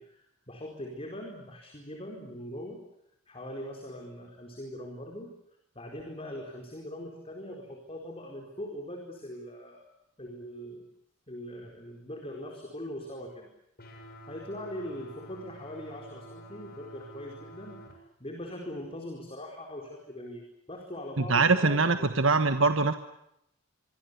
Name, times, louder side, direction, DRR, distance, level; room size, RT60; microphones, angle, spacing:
voice 1, 0.0-2.8 3.3-5.3 5.7-9.9 10.2-10.8 11.3-13.5 14.2-22.3, equal, 30° left, 2 dB, 4.5 m, -41 dB
sound 1, 13.8-17.9, equal, 50° left, 7.5 m, -48 dB
voice 2, 21.2-22.9, right 3 dB, 75° right, 8 dB, 1.4 m, -23 dB
25.5 x 25.0 x 8.3 m, 0.80 s
head